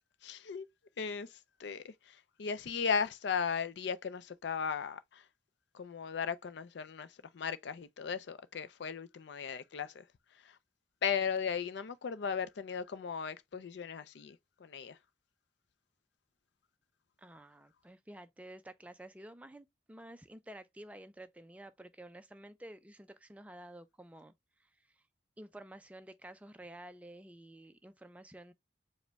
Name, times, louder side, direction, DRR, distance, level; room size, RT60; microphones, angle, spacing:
voice 1, 0.2-0.7 1.0-1.3 1.6-5.2 5.7-7.1 7.3-10.0 11.0-15.0, left 6 dB, 70° left, 0.4 m, -36 dB
voice 2, 17.2-24.3 24.6-25.0 25.4-28.5, right 1 dB, 5° right, 0.3 m, -51 dB
5.0 x 2.1 x 3.4 m
head